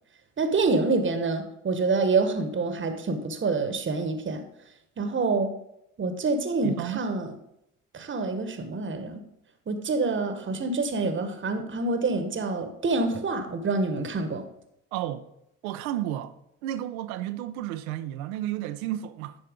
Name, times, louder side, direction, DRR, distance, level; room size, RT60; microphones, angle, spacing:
voice 1, 0.4-4.4 5.0-5.5 6.0-7.4 7.9-9.2 9.7-14.4, right 3 dB, 30° right, 1.1 m, -27 dB
voice 2, 6.6-7.0 14.9-15.2 15.6-16.4 16.6-19.4, right 12 dB, 75° right, 0.7 m, -32 dB
10.5 x 4.3 x 5.0 m
hypercardioid pair, 50°, 42 cm